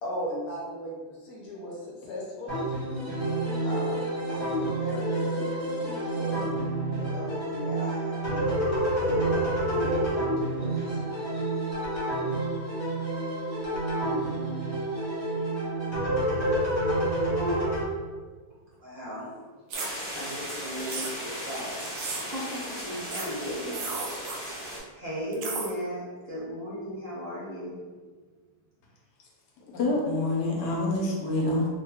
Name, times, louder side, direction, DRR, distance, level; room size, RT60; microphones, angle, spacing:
voice 1, 0.0-2.7 3.6-6.5 7.0-11.2, equal, 70° left, -4 dB, 1.3 m, -38 dB
sound 1, 2.5-17.8, right 1 dB, 20° left, 1.0 m, -28 dB
voice 2, 18.8-19.3 20.1-21.7 22.1-23.9 24.9-27.8, equal, 40° right, -9 dB, 1.0 m, -36 dB
sound 2, 19.7-24.8, equal, 40° left, 1.1 m, -37 dB
sound 3, 19.7-19.9 20.9-21.1 21.9-22.2 23.1-23.3 23.7-24.4 25.3-25.7, right 4 dB, 70° right, 0.9 m, -34 dB
voice 3, 29.7-31.7, left 2 dB, 90° left, -1 dB, 1.3 m, -26 dB
3.3 x 2.2 x 3.5 m, 1.4 s
omnidirectional pair, 1.7 m